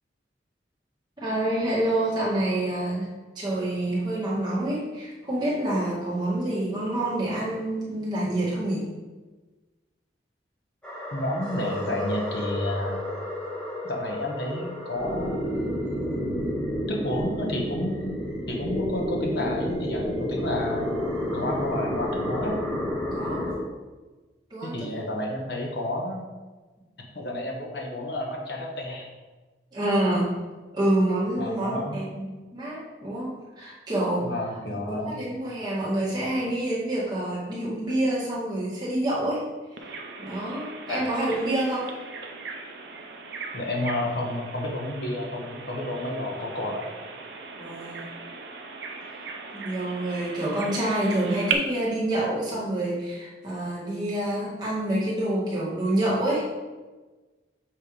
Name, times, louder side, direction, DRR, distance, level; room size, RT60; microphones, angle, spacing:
voice 1, 1.2-8.9 23.1-23.5 24.5-25.2 29.7-30.3 30.7-33.3 33.6-34.3 34.9-39.4 40.2-41.9 47.6-48.1 49.5-56.4, right 1 dB, 25° right, -7 dB, 2.0 m, -27 dB
sound 1, 10.8-23.5, left 1 dB, 5° left, 1.5 m, -30 dB
voice 2, 11.1-13.0 13.8-15.4 16.2-16.5 16.9-18.2 18.5-20.9 21.3-22.6 24.6-26.2 27.1-29.1 31.4-32.0 34.2-35.2 40.9-41.0 43.5-46.9, left 1 dB, 65° left, 0 dB, 1.3 m, -31 dB
Bird vocalization bird call bird song, 39.8-51.5, right 5 dB, 75° right, 0.7 m, -38 dB
7.6 x 3.5 x 4.8 m, 1.3 s
head